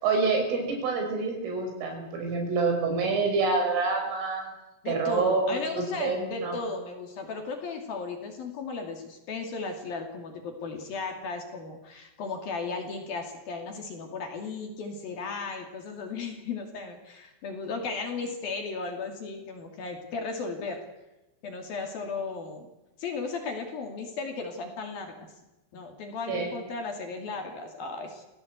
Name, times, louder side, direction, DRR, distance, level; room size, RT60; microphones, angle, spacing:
voice 1, 0.0-4.5 4.9-6.6 26.3-26.5, right 4 dB, 80° right, 3 dB, 8.1 m, -27 dB
voice 2, 4.8-20.8 21.4-22.7 23.0-25.3 25.7-28.2, left 4 dB, 50° left, 4 dB, 4.0 m, -35 dB
27.0 x 17.0 x 8.2 m, 0.98 s
omnidirectional pair, 5.7 m